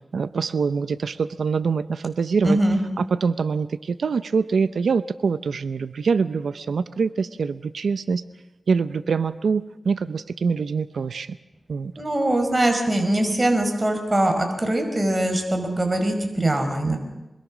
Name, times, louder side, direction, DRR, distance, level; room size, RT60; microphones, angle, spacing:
voice 1, 0.1-2.6 3.0-8.2 8.7-11.4 11.7-11.9, right 5 dB, 90° right, 13 dB, 0.7 m, -24 dB
voice 2, 2.4-2.8 12.0-17.0, right 1 dB, 30° right, 4 dB, 4.8 m, -22 dB
26.5 x 21.5 x 6.2 m, 0.99 s
cardioid pair, 45°, 0 cm